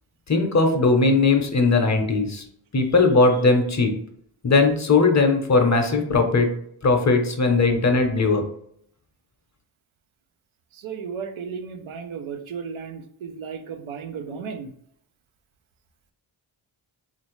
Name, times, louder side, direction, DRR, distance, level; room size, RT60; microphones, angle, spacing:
voice 1, 0.3-2.4 2.7-3.9 4.4-6.5 6.8-8.4, left 3 dB, 35° left, 5 dB, 0.6 m, -19 dB
voice 2, 10.7-14.7, right 6 dB, 85° right, 7 dB, 0.5 m, -34 dB
3.1 x 2.5 x 3.0 m, 0.68 s
cardioid pair, 45°, 47 cm